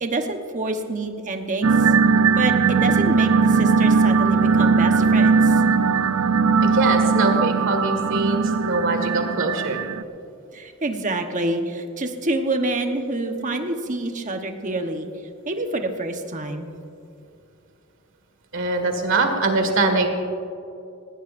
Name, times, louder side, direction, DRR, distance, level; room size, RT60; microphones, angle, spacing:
voice 1, 0.0-1.9 2.4-5.6 10.5-15.1 15.5-16.7, right 2 dB, 35° right, 5 dB, 1.1 m, -27 dB
sound 1, 1.6-10.0, right 5 dB, 90° right, 0.4 m, -19 dB
voice 2, 6.6-9.8 13.3-13.6 18.5-20.1, right 2 dB, 65° right, 5 dB, 1.9 m, -23 dB
19.0 x 18.5 x 2.6 m, 2.6 s
head